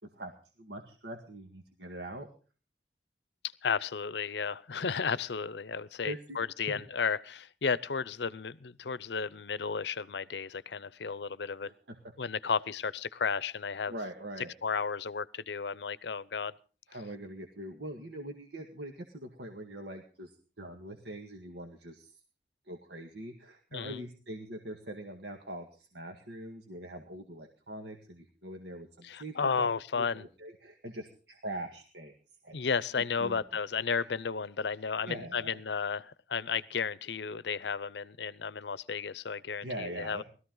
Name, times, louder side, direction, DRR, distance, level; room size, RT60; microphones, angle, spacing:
voice 1, 0.6-2.3 6.0-6.4 6.7-6.8 11.6-12.0 13.9-14.8 16.9-22.1 22.7-29.7 30.0-32.1 32.4-32.6 32.9-33.4 34.0-34.1 35.0-35.6 39.6-40.2, right 1 dB, 75° right, 1.9 m, -43 dB
voice 2, 3.6-11.7 12.2-13.9 14.6-16.5 23.7-24.0 29.0-30.2 32.5-40.2, left 5 dB, 80° left, 0.6 m, -33 dB
20.5 x 14.0 x 3.9 m
head